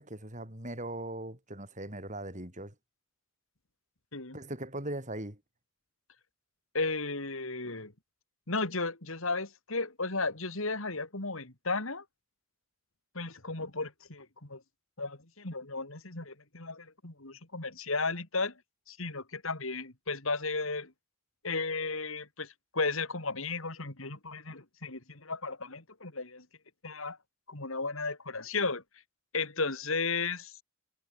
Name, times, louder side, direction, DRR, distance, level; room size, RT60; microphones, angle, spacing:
voice 1, 0.0-2.7 4.3-5.4, right 1 dB, 35° right, 6.5 m, -39 dB
voice 2, 6.7-7.9 8.5-12.0 13.1-14.6 15.0-18.5 18.9-20.9 21.4-26.4 26.8-27.2 27.5-28.8 29.3-30.5, left 3 dB, 70° left, 3.4 m, -34 dB
head